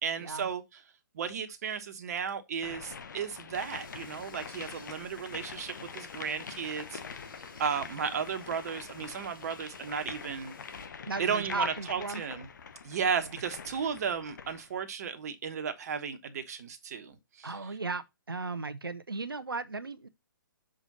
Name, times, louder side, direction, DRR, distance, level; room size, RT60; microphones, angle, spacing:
voice 1, 0.0-0.8 1.1-7.0 7.6-10.5 11.2-12.5 12.8-17.5, right 6 dB, 45° right, 1.2 m, -34 dB
sound 1, 2.6-14.7, left 6 dB, 55° left, 0.9 m, -45 dB
sound 2, 3.5-10.9, left 2 dB, 80° left, 3.5 m, -54 dB
voice 2, 11.1-12.2 13.2-13.4 17.4-20.1, right 3 dB, 85° right, 0.6 m, -36 dB
6.4 x 4.9 x 4.0 m
figure-of-eight pair, 130°, 12 cm